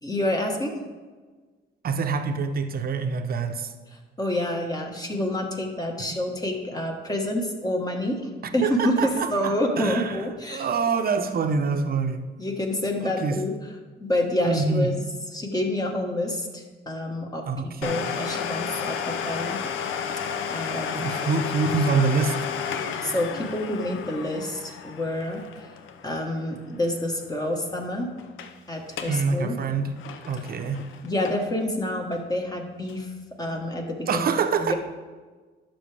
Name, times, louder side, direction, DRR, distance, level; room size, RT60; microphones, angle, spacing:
voice 1, 0.0-0.8 3.9-10.7 12.4-13.7 14.0-14.9 15.3-17.5 17.8-19.6 20.5-21.1 23.0-25.7 26.0-28.1 28.7-29.5 31.0-34.2 34.6-34.7, left 1 dB, 20° left, 1 dB, 1.4 m, -28 dB
voice 2, 1.8-3.7 8.6-10.2 10.5-12.2 13.0-13.4 14.4-14.9 17.5-18.1 20.9-22.4 29.1-29.9 30.3-30.8 34.1-34.7, right 5 dB, 50° right, 7 dB, 0.8 m, -25 dB
Domestic sounds home sounds, 17.8-27.3 27.5-27.6 28.2-28.5 28.9-29.2 29.6-31.6 32.1-32.2 32.9-33.0, left 7 dB, 80° left, 0.7 m, -32 dB
11.5 x 6.0 x 3.4 m, 1.4 s
cardioid pair, 90°, 20 cm